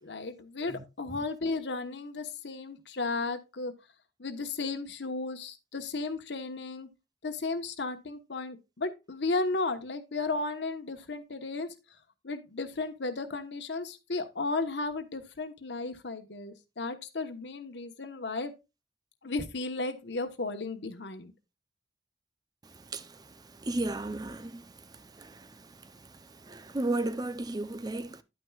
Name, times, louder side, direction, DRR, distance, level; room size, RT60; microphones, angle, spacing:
voice 1, 0.0-3.7 4.2-6.9 7.2-11.7 12.2-18.5 19.2-21.3, left 3 dB, 85° left, 1.2 m, -34 dB
voice 2, 0.7-1.2 22.6-28.2, right 2 dB, 20° right, 0.5 m, -36 dB
11.0 x 9.0 x 2.4 m
head